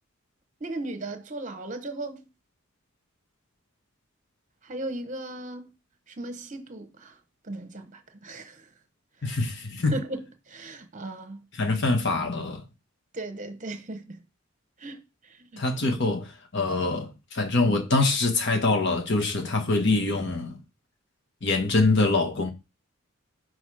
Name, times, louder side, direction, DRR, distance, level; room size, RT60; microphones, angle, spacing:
voice 1, 0.6-2.3 4.6-5.7 6.1-7.2 7.4-8.7 9.9-11.4 13.1-14.2 14.8-15.6, right 2 dB, 35° right, 1.0 m, -37 dB
voice 2, 9.2-9.9 11.5-12.6 15.6-20.6 21.4-22.5, left 3 dB, 55° left, 1.2 m, -24 dB
6.3 x 4.6 x 4.8 m
head